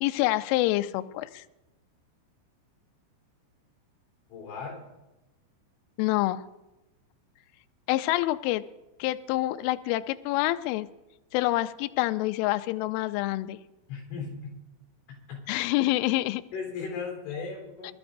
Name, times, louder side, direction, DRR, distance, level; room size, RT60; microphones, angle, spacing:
voice 1, 0.0-1.4 6.0-6.4 7.9-8.6 9.0-10.9 11.3-13.6 15.5-16.4 17.8-17.9, left 17 dB, 85° left, 10 dB, 2.9 m, -27 dB
voice 2, 4.3-4.8 13.9-14.6 15.3-15.4 16.5-17.9, left 5 dB, 65° left, 0 dB, 5.7 m, -36 dB
25.5 x 12.5 x 2.6 m, 1.0 s
omnidirectional pair, 5.8 m